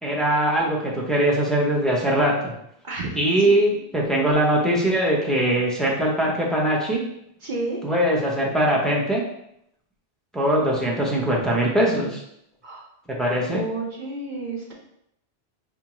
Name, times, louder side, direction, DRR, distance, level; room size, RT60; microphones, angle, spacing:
voice 1, 0.0-2.5 3.1-7.0 7.8-9.2 10.3-12.2 13.1-13.6, right 1 dB, ahead, -3 dB, 0.4 m, -21 dB
voice 2, 3.4-3.8 7.4-7.8 12.6-12.9 13.5-14.7, right 3 dB, 55° right, -2 dB, 0.7 m, -31 dB
4.2 x 2.4 x 2.9 m, 0.76 s
omnidirectional pair, 1.1 m